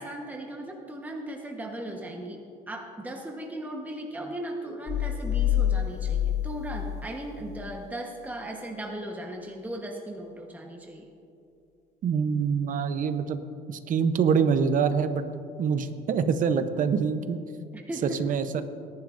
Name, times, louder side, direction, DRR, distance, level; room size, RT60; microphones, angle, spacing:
voice 1, 0.0-2.4 2.7-11.1 17.7-18.2, right 1 dB, 10° right, 1 dB, 1.1 m, -37 dB
sound 1, 4.9-7.7, left 10 dB, 40° left, 0.4 m, -27 dB
voice 2, 12.0-13.4 13.7-15.3 15.6-17.4 18.0-18.6, right 6 dB, 50° right, 10 dB, 0.8 m, -25 dB
19.5 x 11.0 x 2.6 m, 2.4 s
cardioid pair, 110°, 17 cm